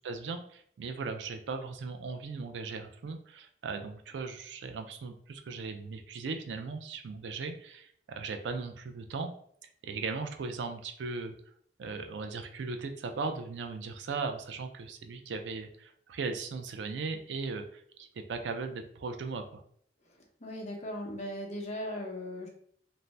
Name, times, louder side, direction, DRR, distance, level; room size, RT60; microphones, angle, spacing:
voice 1, 0.0-9.3 9.8-11.3 11.8-19.6, right 4 dB, 90° right, 6 dB, 0.4 m, -38 dB
voice 2, 20.4-22.5, left 1 dB, 40° left, 0 dB, 0.7 m, -38 dB
2.6 x 2.0 x 3.2 m, 0.64 s
head